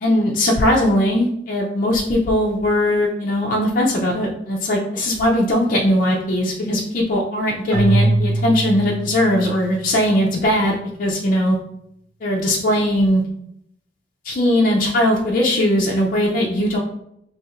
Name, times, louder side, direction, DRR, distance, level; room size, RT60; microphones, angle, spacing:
voice 1, 0.0-11.6 12.2-13.2 14.2-16.8, left 1 dB, 45° left, -2 dB, 0.4 m, -19 dB
Keyboard (musical), 7.7-10.0, right 2 dB, 10° left, 0.8 m, -22 dB
2.8 x 2.4 x 4.2 m, 0.75 s
head